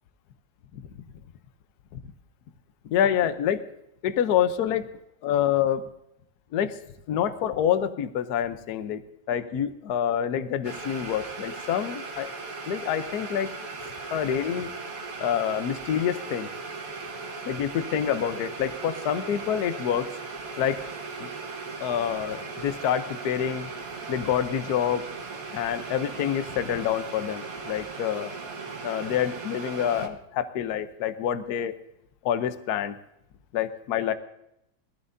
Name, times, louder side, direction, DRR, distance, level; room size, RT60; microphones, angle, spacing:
voice 1, 2.8-3.6 4.0-4.9 5.2-5.9 6.5-6.8 7.1-9.0 9.3-12.3 12.7-13.5 14.1-14.7 15.2-16.5 17.5-20.1 20.6-20.8 21.2-21.3 21.8-23.7 24.1-25.0 25.5-28.3 28.8-31.7 32.2-33.0 33.5-34.1, left 9 dB, 60° left, 11 dB, 1.2 m, -27 dB
sound 1, 10.6-30.1, right 4 dB, 50° right, 1.7 m, -38 dB
22.0 x 14.5 x 2.7 m, 0.80 s
omnidirectional pair, 2.1 m